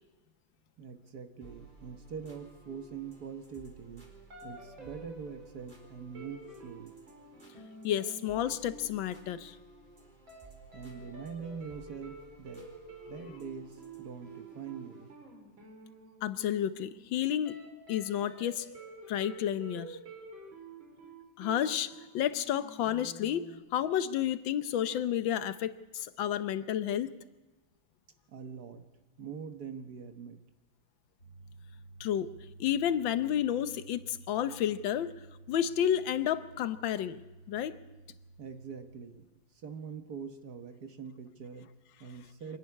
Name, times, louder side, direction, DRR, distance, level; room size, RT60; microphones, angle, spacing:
voice 1, 0.8-4.0 4.4-6.9 10.7-12.7 13.1-15.1 28.3-28.8 29.2-30.4 38.4-39.3 39.6-42.6, right 6 dB, 55° right, 8 dB, 1.6 m, -43 dB
sound 1, 1.4-15.2, right 4 dB, 25° right, 3.7 m, -56 dB
sound 2, 4.3-9.9 10.3-10.5 10.7-23.6, right 3 dB, 85° right, 4.8 m, -50 dB
voice 2, 7.8-9.6 16.2-18.7 19.1-20.0 21.4-27.1 32.0-32.3 32.6-35.2 35.5-37.2 37.5-37.7, left 10 dB, 80° left, 13 dB, 1.6 m, -31 dB
sound 3, 31.2-39.0, right 2 dB, 50° left, 3.2 m, -53 dB
25.0 x 11.0 x 9.6 m, 1.2 s
omnidirectional pair, 2.1 m